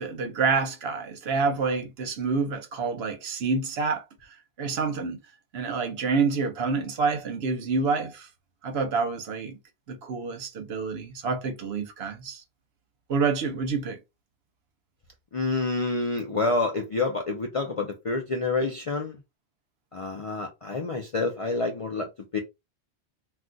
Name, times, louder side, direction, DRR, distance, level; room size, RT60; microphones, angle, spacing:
voice 1, 0.0-5.2 5.5-8.3 8.6-9.6 9.9-12.4 13.1-14.0, right 4 dB, 70° right, 0.9 m, -28 dB
voice 2, 15.3-19.2 19.9-22.4, left 3 dB, 50° left, 0.4 m, -28 dB
2.3 x 2.3 x 3.8 m
omnidirectional pair, 1.1 m